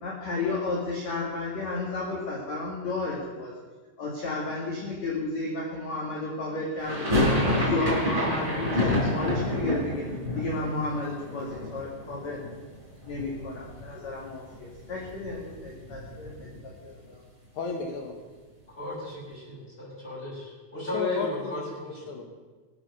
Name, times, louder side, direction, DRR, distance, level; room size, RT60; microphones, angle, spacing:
voice 1, 0.0-3.5 4.0-7.2 7.6-10.0 10.3-12.4 13.1-16.3 16.6-17.2, left 3 dB, 45° left, -4 dB, 2.8 m, -32 dB
sound 1, 6.8-12.8 13.0-13.9 14.2-14.3 14.5-16.7, left 1 dB, 10° right, 4.4 m, -28 dB
voice 2, 17.5-18.1 20.7-22.2, left 4 dB, 80° left, 2 dB, 1.7 m, -34 dB
voice 3, 18.7-21.6 21.9-22.2, left 3 dB, 10° left, -6 dB, 6.1 m, -34 dB
20.5 x 8.2 x 6.8 m, 1.3 s
omnidirectional pair, 5.4 m